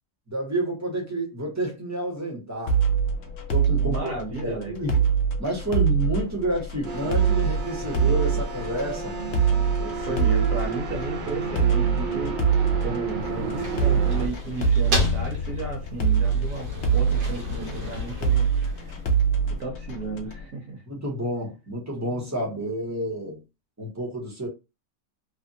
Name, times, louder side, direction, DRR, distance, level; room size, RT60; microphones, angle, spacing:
voice 1, 0.3-2.8 3.5-4.1 4.4-5.0 5.4-9.2 9.8-10.3 20.9-23.4 23.8-24.5, right 1 dB, 15° right, 0.7 m, -30 dB
sound 1, 2.7-20.4, right 6 dB, 80° left, 0.6 m, -24 dB
voice 2, 3.8-4.8 10.1-12.4 12.8-18.5 19.5-20.8, right 3 dB, 55° right, 1.3 m, -33 dB
sound 2, 6.8-14.3, right 4 dB, 90° right, 1.5 m, -32 dB
sound 3, 13.2-19.3, left 3 dB, 70° right, 1.5 m, -32 dB
3.3 x 2.2 x 2.7 m
omnidirectional pair, 1.9 m